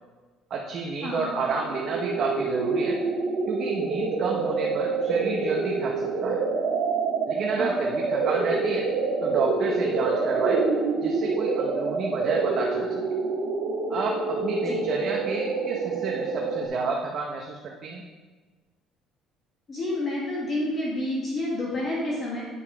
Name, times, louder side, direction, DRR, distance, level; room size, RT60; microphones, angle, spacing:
voice 1, 0.5-3.0 3.5-6.4 7.3-8.9 9.2-10.6 11.0-13.2 13.9-18.0, right 4 dB, 40° right, 0 dB, 0.7 m, -30 dB
sound 1, 1.5-16.7, right 4 dB, 80° right, 1.4 m, -27 dB
voice 2, 19.7-22.4, left 1 dB, 25° left, -5 dB, 1.4 m, -29 dB
8.4 x 5.4 x 4.8 m, 1.3 s
cardioid pair, 165°, 0 cm